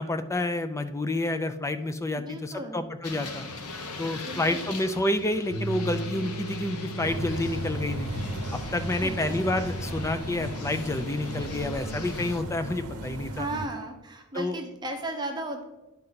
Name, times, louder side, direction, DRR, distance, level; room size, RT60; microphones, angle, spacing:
voice 1, 0.0-3.4 4.0-8.1 8.5-13.5 14.3-14.6, left 2 dB, 15° left, 9 dB, 0.4 m, -29 dB
voice 2, 2.2-2.8 4.3-5.0 9.0-9.4 13.3-15.6, right 1 dB, 20° right, 2 dB, 0.7 m, -35 dB
sound 1, 3.0-12.4, left 3 dB, 80° left, 0.9 m, -40 dB
sound 2, 5.5-12.6, right 2 dB, 35° left, 1.5 m, -40 dB
sound 3, 7.0-13.7, right 1 dB, 85° right, 0.8 m, -35 dB
10.5 x 4.3 x 3.9 m, 1.0 s
head